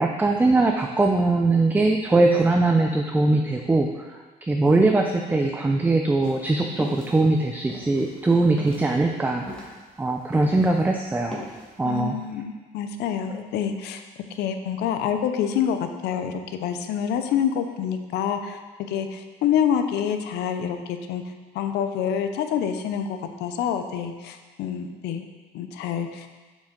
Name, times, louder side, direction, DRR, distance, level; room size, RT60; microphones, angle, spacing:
voice 1, 0.0-9.5 10.0-11.4 11.8-12.2, right 2 dB, 10° right, 3 dB, 0.4 m, -21 dB
sound 1, 6.2-10.8 11.1-11.7, left 1 dB, 5° left, 1.4 m, -39 dB
voice 2, 11.8-14.0 14.3-18.6 18.9-21.2 21.5-25.3 25.5-26.3, left 8 dB, 80° left, 7 dB, 0.6 m, -27 dB
6.9 x 5.2 x 3.8 m, 1.3 s
cardioid pair, 110°, 17 cm